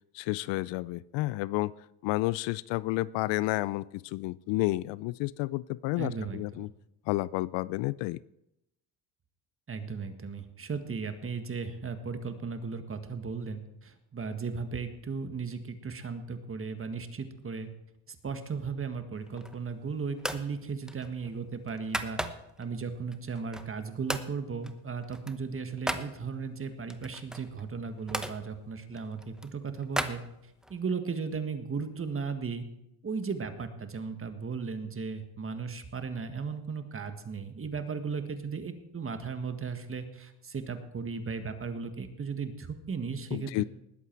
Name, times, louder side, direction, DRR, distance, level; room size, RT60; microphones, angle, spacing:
voice 1, 0.1-1.7 2.0-6.7 7.1-8.2 43.3-43.6, left 19 dB, 70° left, 21 dB, 0.5 m, -31 dB
voice 2, 6.0-6.7 9.7-17.7 18.1-22.2 22.6-30.2 30.7-32.6 33.0-43.6, right 5 dB, 30° right, 9 dB, 1.7 m, -36 dB
sound 1, 19.2-19.7 20.2-20.5 20.9-22.7 23.1-23.8 24.1-24.3 24.6-26.1 26.9-28.4 28.9-30.8, equal, ahead, 0.9 m, -36 dB
19.5 x 8.2 x 4.6 m, 0.85 s
supercardioid pair, 90°, 45 cm